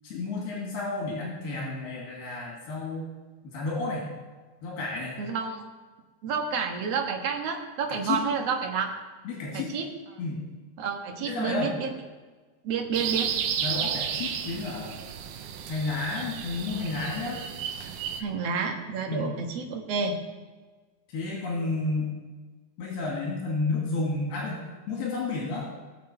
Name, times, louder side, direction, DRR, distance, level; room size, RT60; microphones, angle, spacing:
voice 1, 0.0-3.1 3.4-4.1 4.6-5.2 7.9-8.2 9.2-9.8 10.2-10.4 11.3-11.8 13.6-15.0 15.7-17.4 19.1-19.3 21.1-22.1 22.8-25.7, left 3 dB, 80° left, -3 dB, 4.3 m, -31 dB
voice 2, 5.2-5.7 6.2-8.9 9.5-9.9 10.8-11.9 12.6-13.3 18.2-20.2, right 5 dB, 55° right, 2 dB, 1.9 m, -29 dB
sound 1, 12.9-18.2, right 8 dB, 80° right, 2.6 m, -32 dB
19.5 x 7.3 x 4.5 m, 1.3 s
omnidirectional pair, 4.4 m